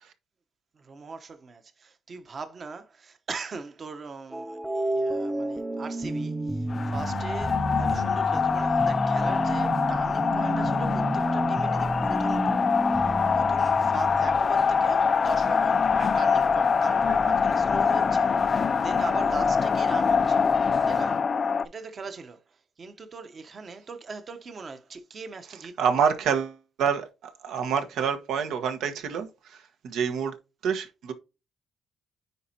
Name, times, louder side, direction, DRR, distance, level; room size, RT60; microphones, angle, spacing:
voice 1, 0.7-21.3 21.6-25.8, right 4 dB, 40° right, 1.0 m, -41 dB
sound 1, 4.3-14.4, right 1 dB, 10° right, 0.6 m, -30 dB
sound 2, 6.7-21.7, left 5 dB, 40° left, 0.4 m, -24 dB
voice 2, 25.8-30.3 30.6-31.1, right 7 dB, 80° right, 1.3 m, -27 dB
9.6 x 4.2 x 2.9 m
cardioid pair, 110°, 0 cm